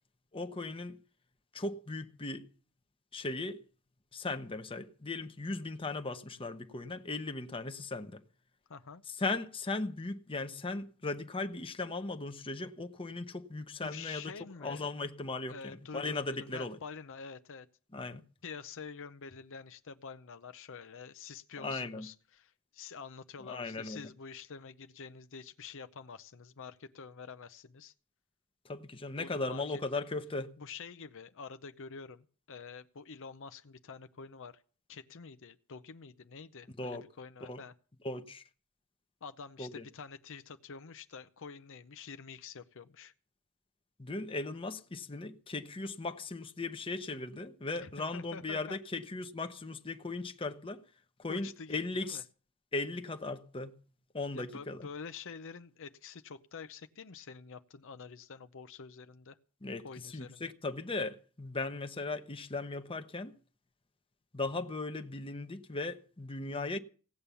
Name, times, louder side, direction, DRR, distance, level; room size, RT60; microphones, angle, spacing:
voice 1, 0.3-1.0 1.5-2.5 3.1-3.6 4.1-8.2 9.1-14.3 14.6-16.8 17.9-18.2 21.6-22.1 23.4-24.1 28.6-30.5 36.8-37.0 37.4-37.6 38.0-38.4 39.6-39.9 44.0-50.8 51.2-52.2 52.7-53.7 54.1-54.9 59.6-63.3 64.3-66.8, left 3 dB, 25° left, 0.9 m, -37 dB
voice 2, 8.7-9.0 13.8-14.8 15.5-17.7 18.4-27.9 29.1-30.0 30.6-34.6 34.9-37.7 39.2-43.1 47.8-48.8 51.3-52.2 54.3-59.4 59.8-60.4, left 5 dB, 60° left, 0.7 m, -47 dB
17.0 x 8.7 x 6.9 m
head